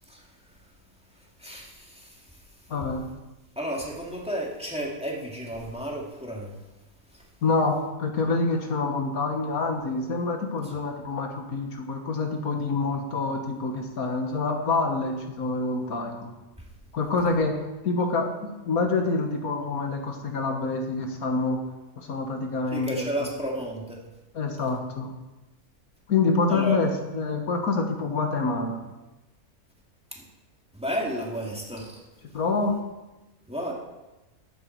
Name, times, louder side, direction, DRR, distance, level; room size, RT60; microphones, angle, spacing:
voice 1, 1.4-2.1 3.6-6.5 22.7-24.0 26.5-26.8 30.1-30.2 30.7-32.0 33.5-33.7, right 1 dB, 5° right, -2 dB, 2.3 m, -32 dB
voice 2, 2.7-3.0 7.4-16.3 16.9-17.6 17.8-21.6 22.0-23.3 24.3-25.1 26.1-28.8 32.3-32.7, left 3 dB, 75° left, 3 dB, 1.8 m, -26 dB
14.5 x 9.1 x 4.6 m, 1.1 s
omnidirectional pair, 1.6 m